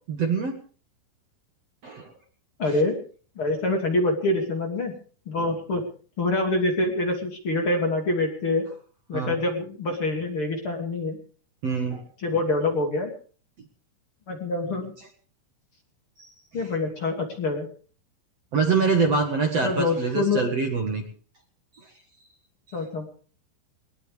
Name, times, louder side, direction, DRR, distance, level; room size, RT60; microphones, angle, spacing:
voice 1, 0.1-0.6 1.8-2.1 9.1-9.4 11.6-12.0 16.2-16.3 18.5-21.0, right 4 dB, 65° right, 4 dB, 1.6 m, -24 dB
voice 2, 2.6-3.0 3.4-4.9 5.3-5.8 6.2-8.7 9.1-11.2 12.2-13.1 14.3-14.9 16.5-17.7 19.6-20.5 22.7-23.0, left 2 dB, 35° left, 3 dB, 2.4 m, -25 dB
20.5 x 19.5 x 3.5 m, 0.41 s
omnidirectional pair, 5.8 m